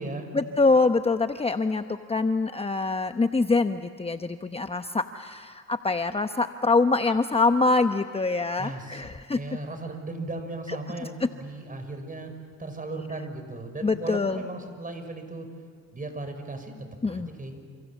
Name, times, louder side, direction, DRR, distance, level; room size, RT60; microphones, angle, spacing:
voice 1, 0.3-9.4 13.8-14.4 17.0-17.3, left 3 dB, 20° left, 8 dB, 0.9 m, -24 dB
voice 2, 8.6-9.0 9.3-12.3 12.6-15.5 15.9-17.6, right 2 dB, 25° right, 7 dB, 5.7 m, -36 dB
29.0 x 27.5 x 7.4 m, 2.2 s
cardioid pair, 90°, 30 cm